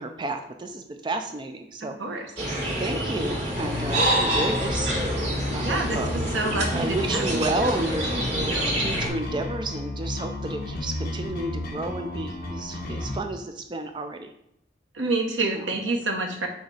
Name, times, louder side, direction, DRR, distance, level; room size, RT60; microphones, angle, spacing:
voice 1, 0.0-2.0 2.8-5.1 5.5-6.2 6.7-8.1 8.4-14.3 15.6-15.7, right 2 dB, 25° right, 6 dB, 0.4 m, -31 dB
voice 2, 1.8-2.3 5.6-7.9 8.4-8.8 14.9-16.5, right 2 dB, 80° right, 2 dB, 1.1 m, -29 dB
sound 1, 2.4-9.1, right 1 dB, 65° right, 2.8 m, -27 dB
sound 2, 3.6-13.2, left 2 dB, 50° left, 1.3 m, -33 dB
6.4 x 3.9 x 4.9 m, 0.78 s
head